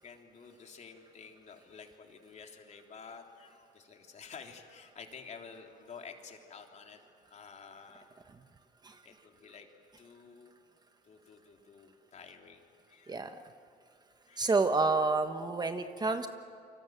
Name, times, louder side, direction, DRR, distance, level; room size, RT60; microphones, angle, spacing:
voice 1, 0.0-7.0 7.3-8.1 9.0-9.7 10.0-10.5 11.0-13.3 14.3-14.5, left 5 dB, 45° left, 2 dB, 3.4 m, -51 dB
voice 2, 13.1-13.4 14.4-16.3, right 3 dB, 25° right, 8 dB, 1.3 m, -29 dB
29.5 x 25.0 x 7.7 m, 2.5 s
cardioid pair, 110°, 17 cm